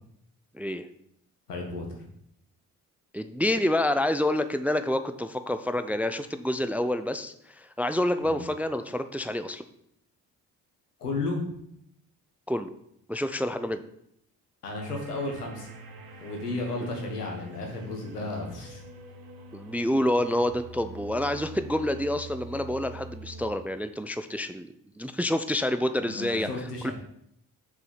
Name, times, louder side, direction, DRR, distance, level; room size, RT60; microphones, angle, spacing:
voice 1, 0.5-0.9 3.1-9.6 12.5-12.7 13.1-13.8 19.5-24.7 25.0-26.5 26.8-26.9, left 1 dB, 5° right, 11 dB, 0.3 m, -28 dB
voice 2, 1.5-2.0 8.2-8.4 11.0-11.4 14.6-15.7 16.2-18.8 26.0-26.9, left 2 dB, 90° left, 1 dB, 1.4 m, -33 dB
sound 1, 14.8-23.5, right 2 dB, 50° right, 1.5 m, -45 dB
6.5 x 4.8 x 5.7 m, 0.74 s
figure-of-eight pair, 45°, 45 cm